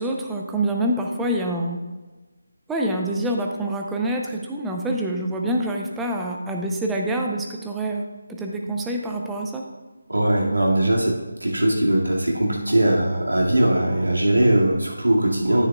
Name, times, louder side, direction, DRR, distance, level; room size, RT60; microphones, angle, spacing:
voice 1, 0.0-1.8 2.7-9.6, right 1 dB, 5° right, 1 dB, 0.7 m, -26 dB
voice 2, 10.1-15.7, right 1 dB, 80° right, -3 dB, 2.2 m, -20 dB
9.8 x 9.3 x 2.4 m, 1.2 s
figure-of-eight pair, 155°, 0 cm